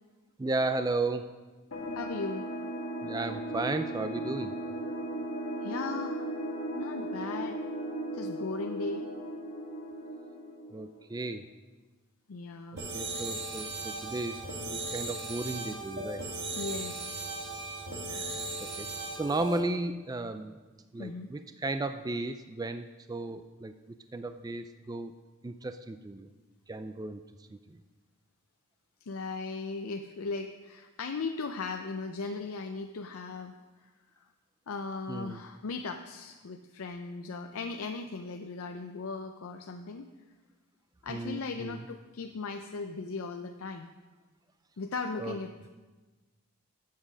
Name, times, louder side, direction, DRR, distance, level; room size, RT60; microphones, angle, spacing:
voice 1, 0.4-1.3 3.0-4.6 10.7-11.5 12.9-16.2 18.1-18.4 18.8-18.9 19.2-20.6 20.9-23.7 24.1-25.1 25.4-26.3 26.7-27.2 27.5-27.8 35.1-35.4 41.1-41.9 45.2-45.4, right 2 dB, 15° right, 9 dB, 0.3 m, -34 dB
sound 1, 1.7-11.0, right 1 dB, 90° left, 1.6 m, -37 dB
voice 2, 1.9-2.5 5.6-6.4 6.7-7.6 8.1-9.1 12.3-12.8 16.6-17.2 21.0-21.3 29.0-33.5 34.7-40.1 41.0-43.9 44.8-45.7, left 4 dB, 70° left, 5 dB, 0.5 m, -37 dB
sound 2, 12.8-19.6, right 2 dB, 50° right, 1.3 m, -37 dB
8.5 x 7.5 x 6.2 m, 1.3 s
head